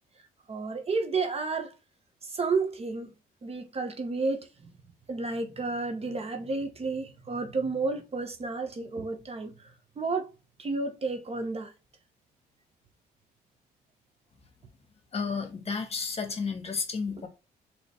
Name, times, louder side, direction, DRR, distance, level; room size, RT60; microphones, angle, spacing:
voice 1, 0.5-1.7 2.3-3.1 3.4-4.5 5.1-9.5 10.0-10.3 10.6-11.7 17.2-17.3, right 3 dB, 35° right, 0.9 m, -31 dB
voice 2, 15.1-17.3, left 5 dB, 35° left, 1.2 m, -32 dB
3.9 x 3.0 x 3.3 m
cardioid pair, 85°, 17 cm